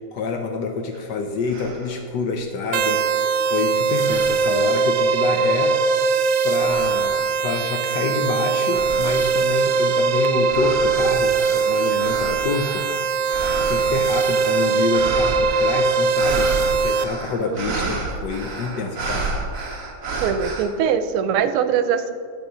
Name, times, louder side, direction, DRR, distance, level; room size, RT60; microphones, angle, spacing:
voice 1, 0.1-5.8 6.4-12.8 13.6-16.5 16.7-19.3, left 4 dB, 70° left, 4 dB, 1.0 m, -27 dB
sound 1, 0.9-1.0 1.4-2.0 2.6-3.6 4.0-4.8 5.4-5.9 6.6-7.3 7.9-20.6, right 3 dB, 50° right, 1.2 m, -32 dB
sound 2, 2.7-17.0, right 5 dB, 75° right, 1.1 m, -21 dB
voice 2, 17.4-17.9 20.2-22.1, right 7 dB, 90° right, 10 dB, 1.5 m, -22 dB
10.5 x 4.5 x 4.9 m, 2.2 s
omnidirectional pair, 2.3 m